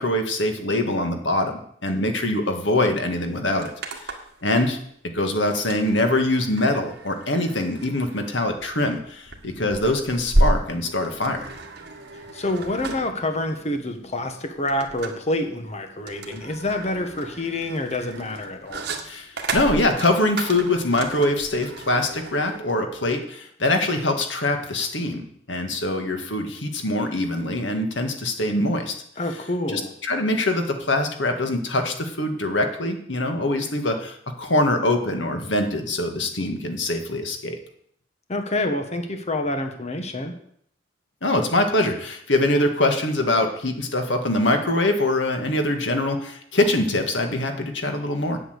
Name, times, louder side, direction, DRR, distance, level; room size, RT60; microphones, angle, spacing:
voice 1, 0.0-3.7 4.4-4.8 5.1-11.5 19.0-28.9 29.7-37.6 41.2-48.4, left 1 dB, 75° left, 5 dB, 1.9 m, -23 dB
sound 1, 2.8-2.9 3.1-4.4 5.5-22.6, right 1 dB, 60° right, 1.7 m, -31 dB
voice 2, 12.1-18.9 29.2-29.9 38.3-40.3, left 1 dB, 35° left, 6 dB, 1.3 m, -27 dB
8.9 x 8.2 x 8.0 m, 0.66 s
head